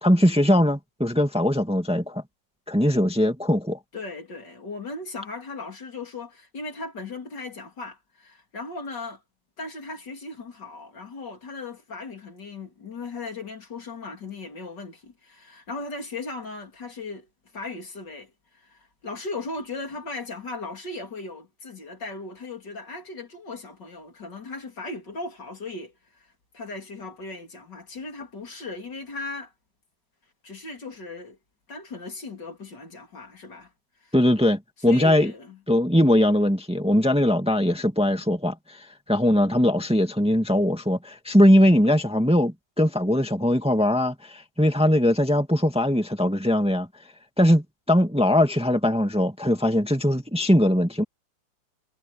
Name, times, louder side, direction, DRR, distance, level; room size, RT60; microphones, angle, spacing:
voice 1, 0.0-2.2 2.7-3.8 34.1-35.3 35.7-46.9 47.4-51.0, left 1 dB, 5° right, 2.1 m, -21 dB
voice 2, 3.9-9.2 9.6-17.3 17.5-25.9 26.5-29.5 30.4-31.4 31.7-33.7 34.0-34.1 34.9-35.6, left 3 dB, 65° left, 4.1 m, -37 dB
omnidirectional pair, 2.1 m